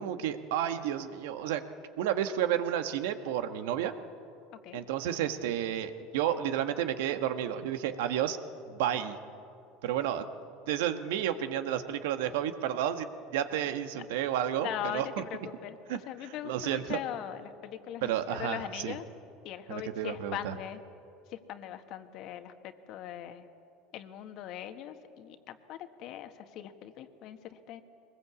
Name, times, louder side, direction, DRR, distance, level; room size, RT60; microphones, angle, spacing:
voice 1, 0.0-1.6 2.0-3.9 4.7-8.4 8.7-9.2 9.8-10.3 10.7-15.2 15.9-16.0 16.4-17.0 18.0-18.9 19.7-20.5, right 10 dB, 80° right, 9 dB, 1.5 m, -31 dB
voice 2, 4.5-4.8 14.6-19.1 19.4-20.8 21.3-23.5 23.9-27.8, left 11 dB, 60° left, 8 dB, 1.6 m, -40 dB
23.0 x 20.5 x 8.4 m, 2.6 s
supercardioid pair, 105°, 0 cm